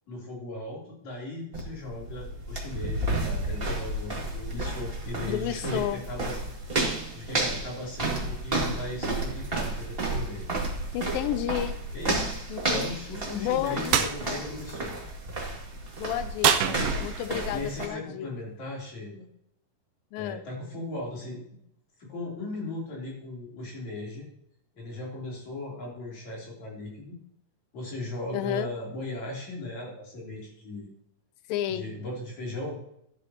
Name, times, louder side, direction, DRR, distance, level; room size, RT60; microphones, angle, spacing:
voice 1, 0.1-6.4 7.1-10.4 11.9-12.3 12.7-14.9 17.5-19.3 20.2-21.4 22.0-24.3 24.7-27.2 27.7-30.9 31.7-32.7, left 2 dB, 55° left, -3 dB, 4.7 m, -37 dB
sound 1, 1.5-17.9, right 2 dB, 20° right, 1.5 m, -32 dB
voice 2, 5.3-6.0 10.9-11.8 12.5-12.9 13.4-14.4 16.0-18.3 20.1-20.4 28.3-28.7 31.5-31.9, left 11 dB, 85° left, 12 dB, 2.4 m, -31 dB
sound 2, 13.9-14.2 16.4-17.4, right 8 dB, 80° right, 2.7 m, -24 dB
14.5 x 11.5 x 2.9 m, 0.74 s
omnidirectional pair, 4.1 m